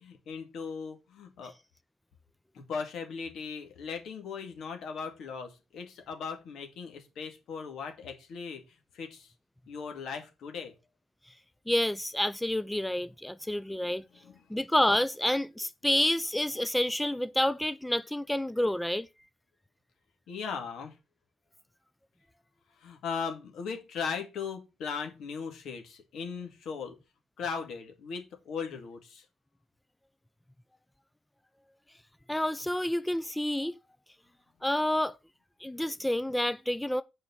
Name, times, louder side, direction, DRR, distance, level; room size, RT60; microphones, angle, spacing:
voice 1, 0.0-1.5 2.5-9.3 9.7-10.7 14.2-14.4 20.3-21.0 22.8-27.0 27.4-29.3, left 5 dB, 75° left, 2.1 m, -38 dB
voice 2, 11.7-14.0 14.5-19.1 32.3-33.8 34.6-35.2 35.6-37.0, left 1 dB, 5° left, 0.3 m, -29 dB
7.1 x 4.9 x 5.6 m
cardioid pair, 90°, 0 cm